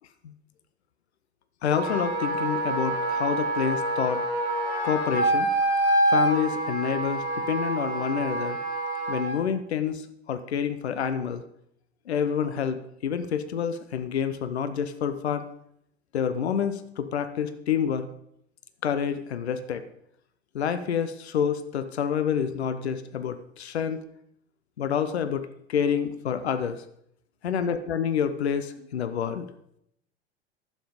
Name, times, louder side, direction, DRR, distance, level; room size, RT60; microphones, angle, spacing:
voice 1, 1.6-4.2 4.8-5.5 6.1-8.6 9.1-11.4 12.1-15.4 16.1-18.1 18.8-19.8 20.5-24.0 24.8-26.8 27.4-29.5, left 8 dB, 75° left, 11 dB, 0.8 m, -28 dB
Wind instrument woodwind instrument, 1.7-9.4, right 2 dB, 30° left, 5.3 m, -26 dB
11.5 x 7.8 x 5.1 m, 0.74 s
figure-of-eight pair, 85°, 33 cm